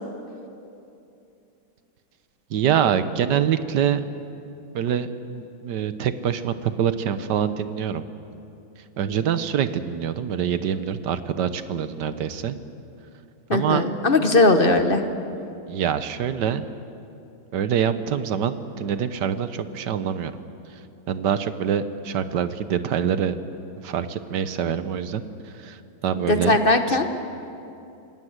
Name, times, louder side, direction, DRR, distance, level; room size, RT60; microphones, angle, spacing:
voice 1, 2.5-4.0 4.7-8.0 9.0-12.6 13.5-13.9 15.7-16.6 17.5-20.4 20.7-20.8 21.1-23.4 23.8-26.6, right 8 dB, 60° right, 11 dB, 1.4 m, -25 dB
voice 2, 13.5-15.0 26.3-27.1, left 2 dB, 35° left, 7 dB, 1.0 m, -19 dB
26.5 x 18.5 x 8.0 m, 2.7 s
omnidirectional pair, 2.3 m